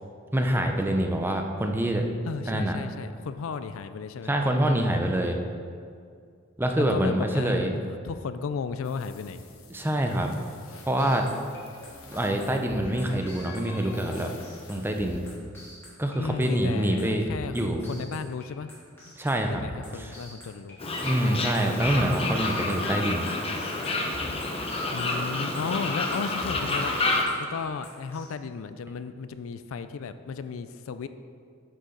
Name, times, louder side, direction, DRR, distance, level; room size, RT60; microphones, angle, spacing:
voice 1, 0.3-2.0 2.5-2.8 4.3-5.4 6.6-7.7 9.7-10.3 10.9-11.6 12.1-14.3 14.7-15.2 16.0-17.2 17.5-17.8 19.2-19.6 19.9-20.1 21.0-23.3, right 1 dB, 10° right, 3 dB, 0.6 m, -25 dB
voice 2, 2.3-4.3 6.8-7.6 7.9-9.4 16.1-18.7 19.1-19.2 19.5-20.8 24.9-26.9 27.5-31.1, left 5 dB, 70° left, 11 dB, 0.4 m, -34 dB
sound 1, 8.8-15.4, left 4 dB, 90° left, 1.0 m, -48 dB
sound 2, 11.0-28.3, left 1 dB, 10° left, 2.2 m, -45 dB
Fowl, 20.8-27.2, left 2 dB, 30° left, 0.9 m, -29 dB
9.5 x 6.8 x 3.9 m, 2.3 s
head